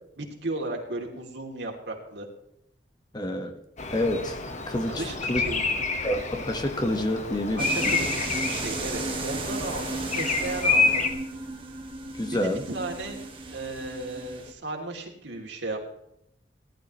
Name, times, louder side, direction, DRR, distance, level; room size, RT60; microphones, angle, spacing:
voice 1, 0.2-2.3 4.9-5.7 7.6-11.1 12.3-13.2 13.5-15.8, right 2 dB, 75° right, 1 dB, 3.0 m, -35 dB
voice 2, 3.1-3.6 3.9-4.4 4.7-5.4 6.0-7.9 12.1-12.6, left 1 dB, 25° left, 5 dB, 1.4 m, -28 dB
Bird vocalization bird call bird song, 3.8-11.1, left 4 dB, 40° left, 1.4 m, -28 dB
sound 1, 7.6-14.5, right 3 dB, 30° right, 1.8 m, -35 dB
18.5 x 12.0 x 3.2 m, 0.77 s
head